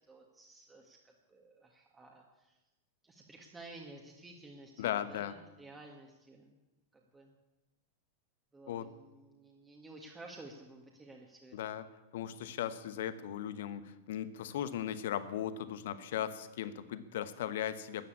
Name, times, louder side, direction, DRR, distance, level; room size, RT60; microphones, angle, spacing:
voice 1, 0.1-2.6 3.0-6.6 6.9-7.3 8.5-11.6, right 2 dB, 15° right, 0 dB, 1.8 m, -53 dB
voice 2, 4.8-5.4 8.7-8.9 11.5-11.8 12.1-18.1, left 10 dB, 55° left, 13 dB, 1.0 m, -37 dB
13.0 x 9.5 x 8.5 m, 1.0 s
figure-of-eight pair, 90°, 0 cm